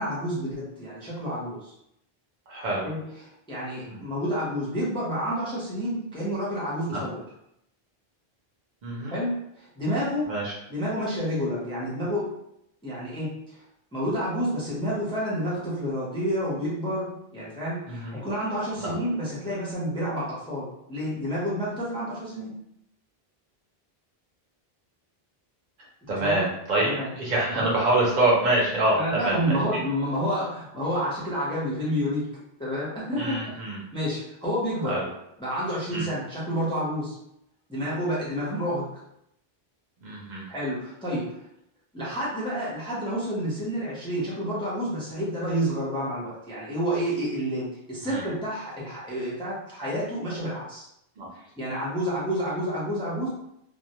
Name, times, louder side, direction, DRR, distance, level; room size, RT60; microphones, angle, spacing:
voice 1, 0.0-1.7 2.8-7.2 9.1-10.3 10.7-12.3 12.8-13.6 13.9-22.5 26.1-26.4 26.8-27.1 27.5-27.6 28.9-32.3 32.6-35.0 35.4-37.2 37.7-38.8 40.5-41.3 41.9-50.9 51.3-53.3, equal, 5° left, -8 dB, 0.6 m, -29 dB
voice 2, 2.5-2.9 3.9-4.0 6.9-7.0 8.8-9.1 10.2-10.5 17.9-18.2 18.8-19.0 26.1-29.8 33.2-33.8 34.8-35.0 35.9-36.1 40.0-40.4 48.0-48.2 51.2-51.3, right 2 dB, 50° right, -5 dB, 0.8 m, -26 dB
2.2 x 2.1 x 2.8 m, 0.78 s
omnidirectional pair, 1.0 m